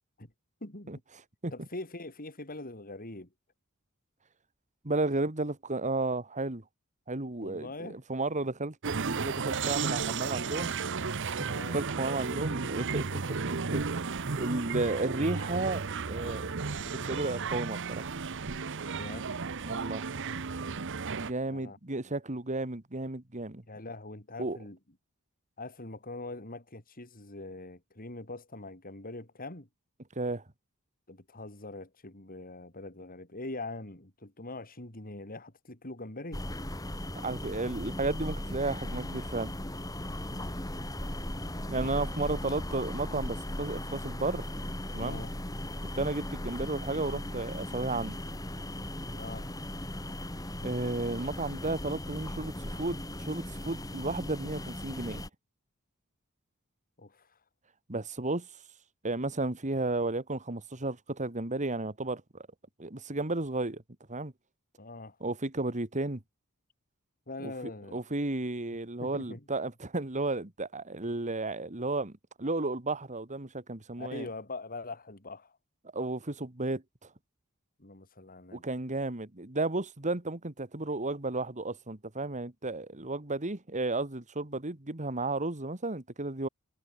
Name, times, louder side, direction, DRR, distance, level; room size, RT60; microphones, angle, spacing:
voice 1, 0.6-0.9 1.5-3.3 7.4-8.0 11.5-11.8 12.6-13.4 19.0-19.5 21.5-21.8 22.0-22.1 23.7-24.8 25.6-29.7 31.1-36.4 40.4-40.6 44.9-45.4 49.1-49.5 57.0-57.4 64.8-65.2 67.3-68.0 69.0-69.5 74.0-75.6 77.8-78.6, left 2 dB, 40° left, 4.7 m, -43 dB
voice 2, 4.8-6.6 7.1-10.7 11.4-13.1 13.5-18.1 19.6-20.2 21.2-23.6 24.4-24.6 30.2-30.4 37.2-39.5 41.7-44.5 44.9-45.2 46.0-48.2 50.6-55.2 57.9-58.5 59.0-62.2 62.8-63.8 64.1-64.3 65.2-66.2 67.4-74.3 75.9-76.8 78.5-86.5, right 2 dB, 35° right, 2.1 m, -33 dB
sound 1, 8.8-21.3, right 5 dB, 60° right, 1.0 m, -34 dB
sound 2, 36.3-55.3, left 1 dB, 15° left, 3.8 m, -38 dB
head